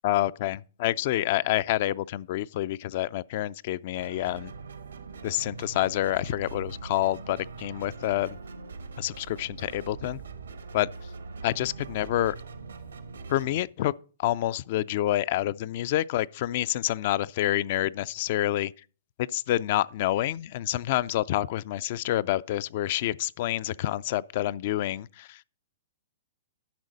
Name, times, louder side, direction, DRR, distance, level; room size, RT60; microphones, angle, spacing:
voice 1, 0.0-4.5 5.2-8.4 9.0-10.2 10.7-10.9 11.4-12.3 13.3-13.9 14.2-18.7 19.3-25.4, left 14 dB, 50° left, 0.3 m, -28 dB
sound 1, 4.0-13.6, right 4 dB, 85° right, 1.1 m, -42 dB
10.5 x 6.4 x 4.0 m
hypercardioid pair, 125°, 0 cm